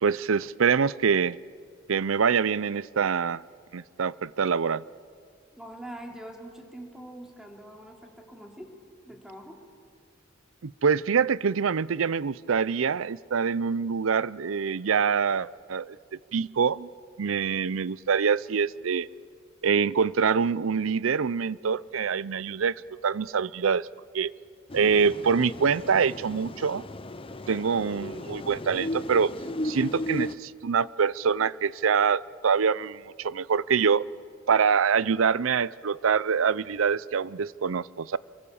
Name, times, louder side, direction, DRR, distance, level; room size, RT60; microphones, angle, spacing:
voice 1, 0.0-1.4 1.9-3.4 3.7-4.8 10.6-16.0 16.3-16.9 17.2-19.1 19.6-22.7 23.0-23.9 24.1-24.3 24.7-26.8 27.5-29.3 29.6-34.0 34.5-38.2, right 6 dB, 80° right, 20 dB, 0.5 m, -25 dB
voice 2, 5.5-8.7 9.0-9.6, right 1 dB, 5° right, 1 dB, 3.2 m, -43 dB
sound 1, 24.7-30.4, left 1 dB, 25° left, 0.7 m, -35 dB
28.0 x 24.0 x 7.1 m, 2.2 s
head